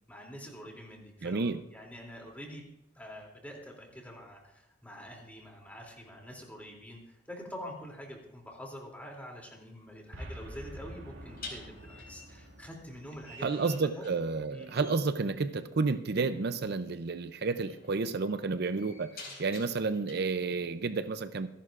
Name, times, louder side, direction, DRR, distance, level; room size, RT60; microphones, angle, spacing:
voice 1, 0.1-2.6 2.9-13.5 13.8-14.0 14.5-14.8 19.2-19.3, equal, 10° left, -1 dB, 2.9 m, -46 dB
voice 2, 1.2-1.6 13.4-21.5, right 4 dB, 55° right, 10 dB, 0.5 m, -31 dB
sound 1, 9.0-9.1 11.4-14.4 14.7-15.2 16.6-16.8 17.3-20.1, left 3 dB, 55° left, 4.9 m, -49 dB
Boom, 10.1-14.5, equal, 75° right, 3.5 m, -48 dB
26.5 x 11.0 x 2.5 m, 0.85 s
head